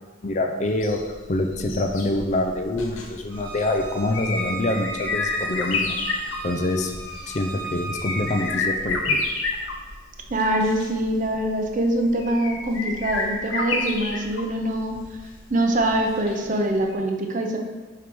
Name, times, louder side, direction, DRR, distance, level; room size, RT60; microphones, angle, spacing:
voice 1, 0.2-6.0 6.4-6.9 7.3-9.2, left 2 dB, 35° left, 4 dB, 0.5 m, -25 dB
sound 1, 0.7-16.6 16.9-17.0, left 3 dB, 80° left, 0.8 m, -31 dB
Bowed string instrument, 3.3-8.5, right 3 dB, 65° right, 1.4 m, -36 dB
voice 2, 10.3-15.0 15.5-17.6, right 1 dB, 40° right, 3 dB, 0.6 m, -24 dB
4.9 x 4.6 x 5.3 m, 1.4 s
head